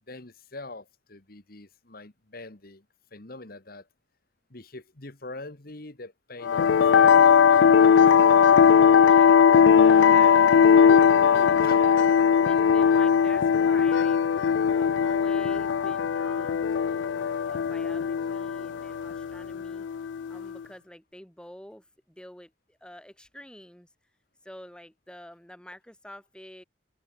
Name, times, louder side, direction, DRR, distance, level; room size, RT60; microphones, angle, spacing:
voice 1, 0.1-2.8 3.1-3.9 4.5-7.9 11.3-11.8, left 2 dB, 50° left, 1.7 m, -44 dB
sound 1, 6.4-20.5, left 7 dB, 65° left, 0.3 m, -19 dB
voice 2, 9.1-14.2 14.7-19.9 20.3-23.9 24.4-26.6, equal, 5° left, 2.1 m, -48 dB
head